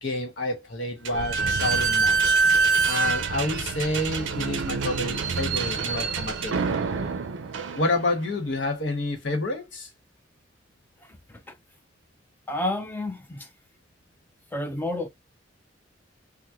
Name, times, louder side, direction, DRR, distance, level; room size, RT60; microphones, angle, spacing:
voice 1, 0.0-2.4 2.9-6.6 7.8-9.9, left 2 dB, 80° left, 1.2 m, -29 dB
Slam / Squeak, 1.0-8.3, right 4 dB, 90° right, 0.5 m, -25 dB
voice 2, 12.5-13.5 14.5-15.1, left 1 dB, 10° left, 0.5 m, -30 dB
3.0 x 2.1 x 3.5 m
head